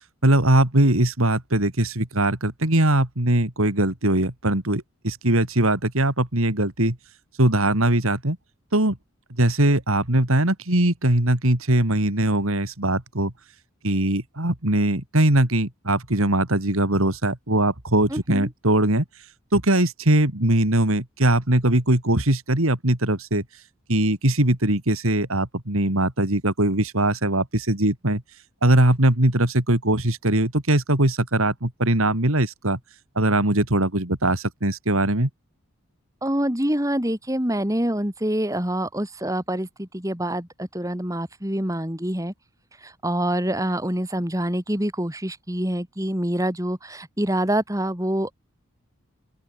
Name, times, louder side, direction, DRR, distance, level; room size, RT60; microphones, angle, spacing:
voice 1, 0.2-7.0 7.4-8.4 8.7-9.0 9.4-13.3 13.8-19.1 19.5-23.4 23.9-28.2 28.6-32.8 33.2-35.3, right 1 dB, 70° right, 3.4 m, -21 dB
voice 2, 18.1-18.5 36.2-42.3 42.8-48.3, right 1 dB, 15° right, 2.5 m, -26 dB
open air
head